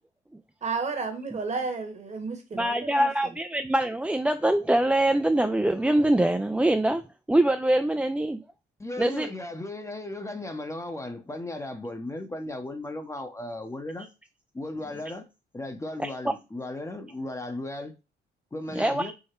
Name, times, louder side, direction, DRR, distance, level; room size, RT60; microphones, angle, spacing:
voice 1, 0.6-3.1, right 4 dB, 35° right, 1.2 m, -32 dB
voice 2, 2.5-7.0 7.3-8.4 9.0-9.3 16.0-16.1 18.7-19.1, right 1 dB, 5° right, 0.3 m, -24 dB
voice 3, 8.8-14.1 14.5-15.3 15.5-17.9 18.5-19.1, left 2 dB, 15° left, 0.7 m, -36 dB
4.8 x 2.1 x 4.4 m
cardioid pair, 90°, 20 cm